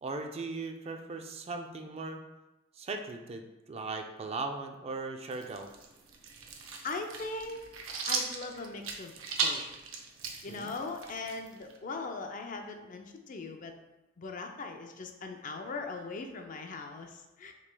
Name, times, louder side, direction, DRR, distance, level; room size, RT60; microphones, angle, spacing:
voice 1, 0.0-2.2 2.8-5.7 10.4-10.7, right 3 dB, 30° right, 5 dB, 0.4 m, -38 dB
sound 1, 5.3-11.8, right 5 dB, 90° right, 0.6 m, -37 dB
voice 2, 6.8-7.6 8.1-9.1 9.4-9.6 10.4-13.7 14.2-17.5, left 3 dB, 40° left, 5 dB, 0.4 m, -40 dB
6.3 x 3.2 x 2.2 m, 1.0 s
head